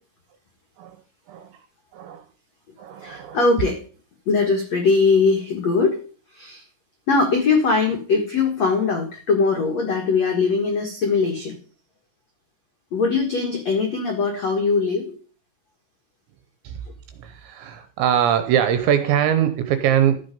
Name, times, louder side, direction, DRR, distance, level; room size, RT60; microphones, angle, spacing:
voice 1, 1.3-1.6 1.9-2.3 2.8-3.4 16.6-16.8 17.2-20.2, right 9 dB, 80° right, 10 dB, 2.7 m, -22 dB
voice 2, 3.0-3.8 4.2-6.0 6.3-6.6 7.1-11.6 12.9-15.1, left 4 dB, 90° left, 2 dB, 1.4 m, -21 dB
13.0 x 8.0 x 5.2 m, 0.42 s
omnidirectional pair, 5.9 m